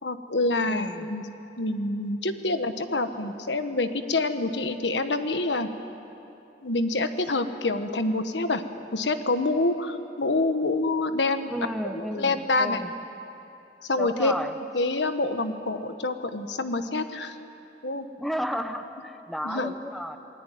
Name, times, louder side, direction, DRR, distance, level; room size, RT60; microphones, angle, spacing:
voice 1, 0.0-1.3 1.6-5.7 6.6-8.6 8.9-11.5 11.8-12.8 13.9-14.3 14.7-17.4 17.8-18.1 19.4-19.7, left 2 dB, 85° left, 9 dB, 1.4 m, -27 dB
voice 2, 0.7-1.1 11.5-12.9 13.9-14.6 18.2-20.2, equal, ahead, 7 dB, 1.1 m, -33 dB
28.0 x 20.5 x 9.3 m, 2.9 s
head